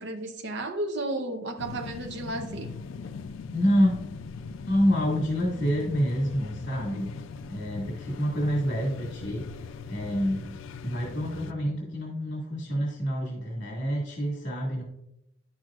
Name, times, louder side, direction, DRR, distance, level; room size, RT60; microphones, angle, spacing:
voice 1, 0.0-2.7, right 2 dB, 65° right, 0.6 m, -33 dB
sound 1, 1.6-11.5, left 5 dB, 90° left, 0.4 m, -40 dB
voice 2, 3.5-3.9 4.7-7.1 7.5-9.5 9.9-10.5 10.8-14.8, equal, 55° left, 1.8 m, -27 dB
10.0 x 6.2 x 2.4 m
head